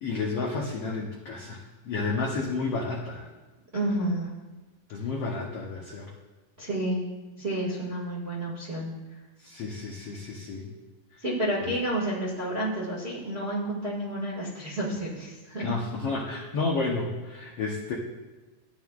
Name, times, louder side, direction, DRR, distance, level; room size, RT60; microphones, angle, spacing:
voice 1, 0.0-3.3 4.9-6.1 9.4-10.7 15.6-17.9, left 3 dB, 80° left, -2 dB, 1.3 m, -31 dB
voice 2, 3.7-4.3 6.6-7.0 7.4-8.9 11.2-15.7, right 1 dB, 30° right, -7 dB, 1.2 m, -30 dB
15.0 x 9.3 x 2.4 m, 1.2 s
omnidirectional pair, 4.1 m